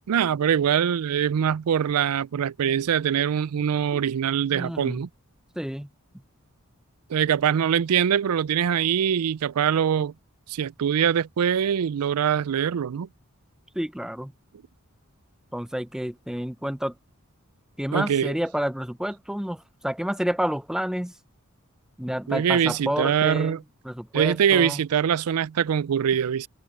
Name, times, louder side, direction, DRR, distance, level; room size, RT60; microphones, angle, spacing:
voice 1, 0.1-5.1 7.1-10.1 10.5-13.1 17.9-18.3 22.3-23.6 24.1-26.5, right 8 dB, 80° right, 0.4 m, -23 dB
voice 2, 4.5-5.1 5.6-5.9 13.7-14.3 15.5-16.9 17.8-21.1 22.0-23.6 23.8-24.8, equal, 5° right, 0.5 m, -29 dB
head